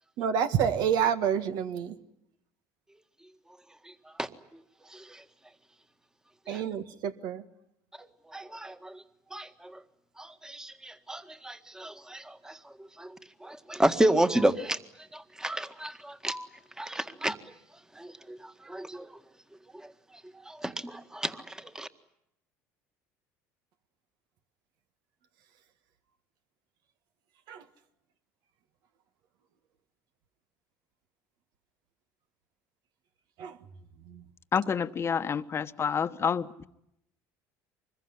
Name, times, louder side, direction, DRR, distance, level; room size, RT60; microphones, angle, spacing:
voice 1, 0.2-2.0 6.5-7.4 27.5-27.7 33.4-33.6 34.1-34.2, right 8 dB, 65° right, 1.9 m, -28 dB
voice 2, 4.9-5.2 6.5-6.6 8.0-9.0 9.3-9.8 10.2-14.8 15.1-16.5 16.8-17.4 18.0-19.1 19.7-19.9 20.5-21.9, right 1 dB, 10° right, 1.8 m, -32 dB
voice 3, 34.5-36.7, left 7 dB, 35° left, 1.3 m, -28 dB
25.0 x 21.5 x 9.7 m
supercardioid pair, 90°, 8 cm